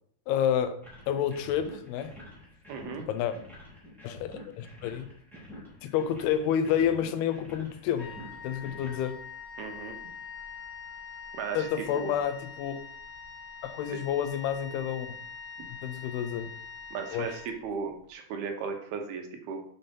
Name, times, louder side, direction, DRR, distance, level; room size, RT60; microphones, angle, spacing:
voice 1, 0.3-0.8 1.1-2.1 3.1-3.4 4.0-5.1 5.8-8.2 8.4-9.2 11.5-12.8 13.6-15.1 15.7-16.5 17.1-17.3, left 9 dB, 85° left, 2.7 m, -29 dB
sound 1, 0.8-9.0, left 1 dB, ahead, 1.6 m, -48 dB
voice 2, 2.7-3.0 9.6-10.0 11.3-11.7 11.9-12.1 13.9-14.0 16.9-19.6, right 5 dB, 75° right, 2.9 m, -36 dB
Wind instrument woodwind instrument, 7.9-18.0, left 6 dB, 35° left, 2.0 m, -44 dB
6.5 x 5.8 x 5.2 m
omnidirectional pair, 4.6 m